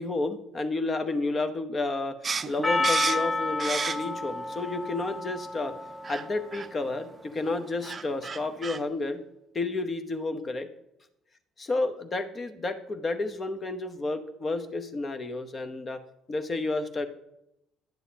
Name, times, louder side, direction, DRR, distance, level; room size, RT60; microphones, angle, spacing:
voice 1, 0.0-2.2 2.4-5.7 6.1-9.2 9.5-10.7 11.7-16.0 16.3-17.1, left 2 dB, 35° left, 8 dB, 0.9 m, -31 dB
sound 1, 2.2-4.3 4.7-5.4 6.0-6.3 6.5-6.7 7.5-7.6 7.8-8.8, right 5 dB, 35° right, 0.4 m, -32 dB
Percussion, 2.6-6.9, left 3 dB, 15° left, 0.5 m, -31 dB
10.5 x 9.5 x 2.8 m, 0.84 s
hypercardioid pair, 55°, 0 cm